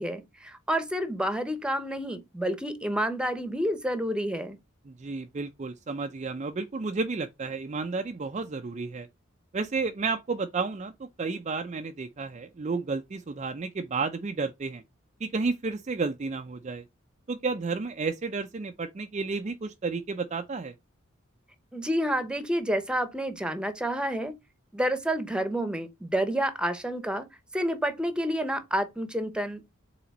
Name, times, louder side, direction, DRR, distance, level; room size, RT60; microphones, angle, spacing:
voice 1, 0.0-4.6 21.7-24.3 24.7-27.3 27.5-29.6, equal, 5° right, 0.8 m, -29 dB
voice 2, 4.9-9.1 9.5-14.8 15.2-16.8 17.3-20.7, right 4 dB, 35° right, 0.4 m, -32 dB
5.8 x 4.0 x 4.1 m
head